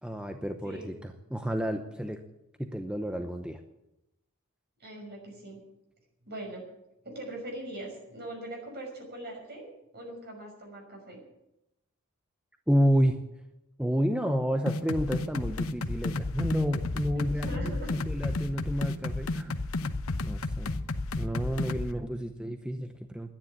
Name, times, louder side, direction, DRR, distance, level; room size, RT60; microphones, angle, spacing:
voice 1, 0.0-2.2 2.6-3.6 12.7-13.2 13.8-17.8 18.1-19.6 20.2-20.8 21.2-23.3, equal, 5° right, 6 dB, 0.8 m, -30 dB
voice 2, 0.6-1.0 4.8-5.6 6.2-6.6 7.0-9.7 9.9-11.2 17.1-17.9, right 1 dB, 50° right, 1 dB, 6.0 m, -41 dB
sound 1, 14.7-21.9, left 2 dB, 85° left, 0.9 m, -32 dB
12.0 x 10.5 x 9.7 m, 0.88 s
head